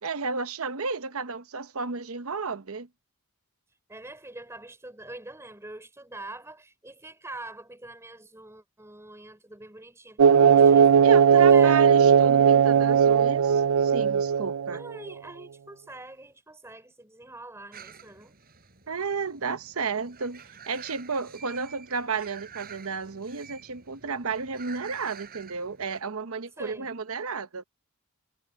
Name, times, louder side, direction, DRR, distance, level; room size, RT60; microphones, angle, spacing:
voice 1, 0.0-2.9 11.0-14.8 18.9-27.6, right 4 dB, 70° right, 0.9 m, -32 dB
voice 2, 3.9-10.9 11.3-11.9 14.7-18.3 26.6-26.9, right 2 dB, 10° right, 3.6 m, -44 dB
sound 1, 10.2-14.9, right 7 dB, 90° right, 0.4 m, -18 dB
sound 2, 17.7-26.0, right 7 dB, 45° right, 7.1 m, -49 dB
head